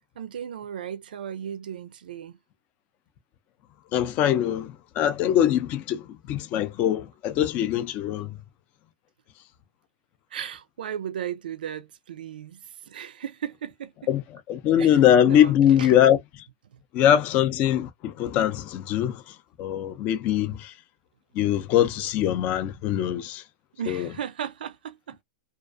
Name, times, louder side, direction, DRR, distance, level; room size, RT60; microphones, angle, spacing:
voice 1, 0.2-2.4 10.3-13.9 14.8-15.0 15.3-16.0 23.8-25.2, right 9 dB, 85° right, 0.3 m, -36 dB
voice 2, 3.9-8.4 14.1-14.2 14.5-16.2 16.9-19.2 19.6-20.7 21.4-23.4 23.9-24.1, left 10 dB, 35° left, 0.4 m, -22 dB
2.3 x 2.2 x 2.5 m
hypercardioid pair, 140°, 5 cm